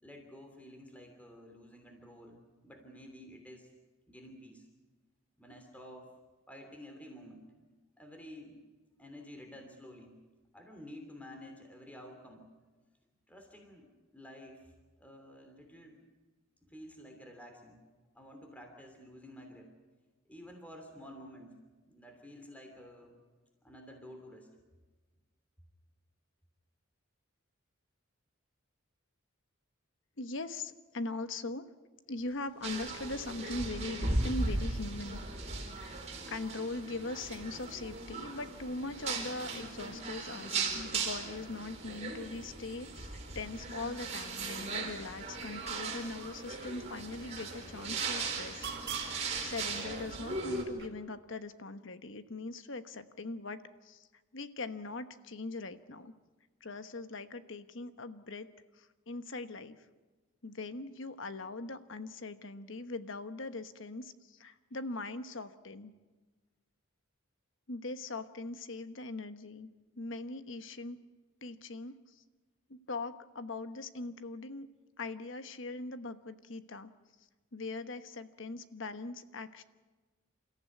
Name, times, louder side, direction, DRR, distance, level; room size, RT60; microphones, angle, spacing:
voice 1, 0.0-3.7 4.1-4.7 5.4-6.2 6.5-7.5 8.0-8.6 9.0-10.1 10.5-12.5 13.3-14.7 15.0-16.0 16.7-17.8 18.1-19.7 20.3-21.6 21.9-23.2 23.6-24.5, equal, 5° left, 4 dB, 3.0 m, -51 dB
voice 2, 30.2-31.7 32.1-35.2 35.8-48.6 49.1-54.1 54.3-56.1 56.6-58.5 58.7-59.8 60.4-65.9 67.7-69.7 70.0-71.0 71.4-72.2 72.7-74.7 75.0-76.9 77.5-79.6, left 2 dB, 60° left, 10 dB, 1.2 m, -41 dB
sound 1, 32.2-50.9, right 3 dB, 50° right, 3.9 m, -50 dB
sound 2, 32.6-50.6, right 3 dB, 30° right, 4.3 m, -38 dB
28.5 x 14.5 x 9.3 m, 1.3 s
head